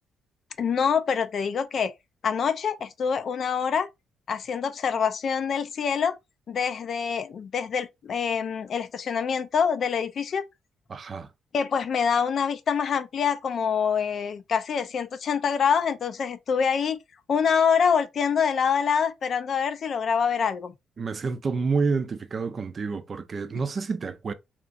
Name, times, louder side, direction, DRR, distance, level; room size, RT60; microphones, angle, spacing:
voice 1, 0.6-1.9 2.2-3.9 4.3-6.1 6.5-10.4 11.5-17.0 17.3-20.7, left 6 dB, 55° left, 0.4 m, -25 dB
voice 2, 10.9-11.3 21.0-24.3, right 4 dB, 40° right, 0.4 m, -28 dB
2.9 x 2.4 x 2.4 m
cardioid pair, 90°, 0 cm